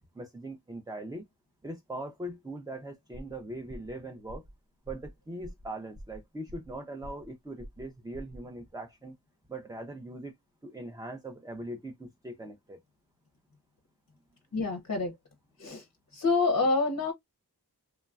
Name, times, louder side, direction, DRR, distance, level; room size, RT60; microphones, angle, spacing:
voice 1, 0.1-1.2 1.6-4.4 4.9-9.1 9.5-10.3 10.6-12.8, right 1 dB, 10° right, 0.4 m, -41 dB
sound 1, 3.1-3.4 3.7-4.0 4.3-4.6 4.8-5.1 5.4-5.7 5.9-6.8 7.0-7.3 7.6-8.4, equal, 60° right, 1.0 m, -46 dB
voice 2, 14.5-15.1 15.6-15.8 16.1-17.1, left 3 dB, 45° left, 0.6 m, -27 dB
3.1 x 2.2 x 2.3 m
wide cardioid pair, 45°, 39 cm